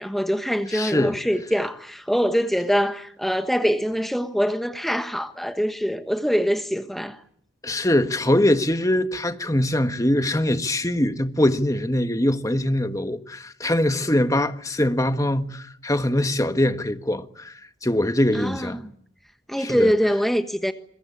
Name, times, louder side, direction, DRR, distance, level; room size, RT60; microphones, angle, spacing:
voice 1, 0.0-7.2 18.3-18.8 19.5-20.7, equal, ahead, 1.2 m, -24 dB
voice 2, 0.7-1.2 7.6-17.5 17.8-18.8 19.6-19.9, left 1 dB, 15° left, 1.5 m, -22 dB
26.5 x 22.5 x 8.6 m
head